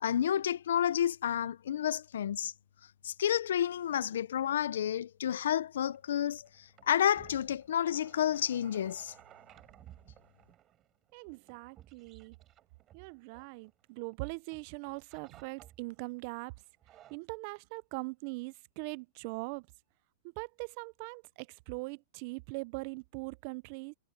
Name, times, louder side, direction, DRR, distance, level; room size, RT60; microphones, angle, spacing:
voice 1, 0.0-2.5 3.0-6.5 6.9-9.1, left 10 dB, 90° left, 0.4 m, -30 dB
sound 1, 5.8-14.2 14.5-16.1 16.6-17.2, right 12 dB, 25° right, 3.5 m, -58 dB
voice 2, 11.1-12.4 12.9-16.5 17.1-19.7 20.4-23.9, right 27 dB, 40° right, 0.3 m, -41 dB
supercardioid pair, 165°, 0 cm